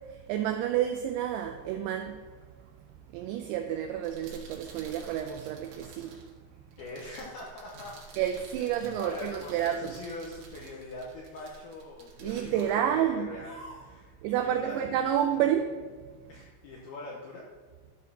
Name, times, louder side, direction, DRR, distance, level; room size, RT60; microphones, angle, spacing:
voice 1, 0.1-2.2 3.1-6.2 8.2-9.9 12.2-13.3 14.2-15.7, right 10 dB, 90° right, 6 dB, 2.5 m, -29 dB
sound 1, 3.9-13.7, right 5 dB, 65° right, 3.0 m, -52 dB
voice 2, 6.8-8.0 8.6-8.7 9.0-14.8 16.3-17.5, left 2 dB, 85° left, -2 dB, 2.2 m, -43 dB
sound 2, 7.2-8.3 8.7-9.0 9.5-10.0 10.4-10.9 11.3-11.7 12.2-12.7 13.4-14.0, equal, 55° left, 3.5 m, -52 dB
12.5 x 4.2 x 5.5 m, 1.5 s
omnidirectional pair, 5.7 m